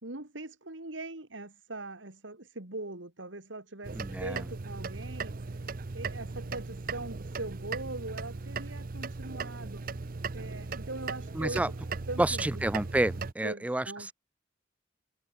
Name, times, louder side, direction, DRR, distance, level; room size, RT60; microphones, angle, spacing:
voice 1, 0.0-5.4 5.9-9.9 10.3-11.7 12.1-12.6 13.4-14.1, right 2 dB, 85° right, 3.1 m, -41 dB
sound 1, 3.8-13.3, right 4 dB, 50° right, 0.7 m, -38 dB
voice 2, 4.0-4.4 11.4-11.7 12.2-13.8, right 1 dB, 5° right, 0.3 m, -29 dB
head